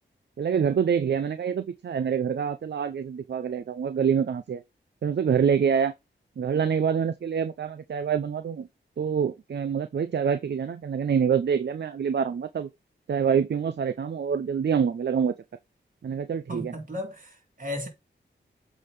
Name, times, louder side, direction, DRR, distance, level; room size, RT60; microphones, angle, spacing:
voice 1, 0.4-4.6 5.0-5.9 6.4-8.7 9.0-12.7 13.1-15.3 16.0-16.7, right 7 dB, 60° right, 0.6 m, -26 dB
voice 2, 16.5-17.9, left 1 dB, 45° right, 3.4 m, -35 dB
8.1 x 3.8 x 5.0 m
wide cardioid pair, 80°, 20 cm